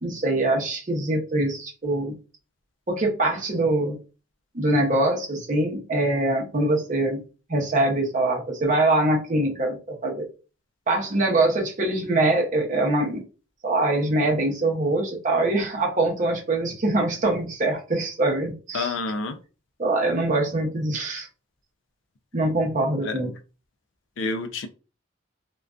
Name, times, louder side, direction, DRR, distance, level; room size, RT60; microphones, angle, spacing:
voice 1, 0.0-2.2 2.9-4.0 4.5-7.2 7.5-9.8 10.0-10.2 10.9-13.2 13.6-18.9 19.8-21.3 22.3-23.3, right 2 dB, 40° right, 0.7 m, -23 dB
voice 2, 18.7-19.4 23.0-23.2 24.2-24.7, left 3 dB, 70° left, 0.4 m, -28 dB
2.5 x 2.2 x 2.3 m
head